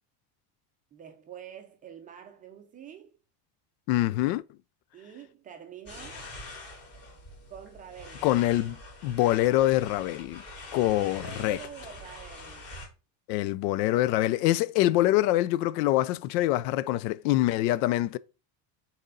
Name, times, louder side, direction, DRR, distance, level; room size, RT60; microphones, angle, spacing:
voice 1, 0.9-3.1 4.9-6.3 7.5-8.3 10.9-12.7, right 9 dB, 20° right, 0.4 m, -46 dB
voice 2, 3.9-4.4 8.2-8.8 9.0-10.4 10.7-11.6 13.3-18.2, left 15 dB, 90° left, 0.6 m, -25 dB
sound 1, 5.9-12.9, left 2 dB, 30° left, 2.4 m, -45 dB
6.6 x 4.3 x 3.7 m
cardioid pair, 180°, 48 cm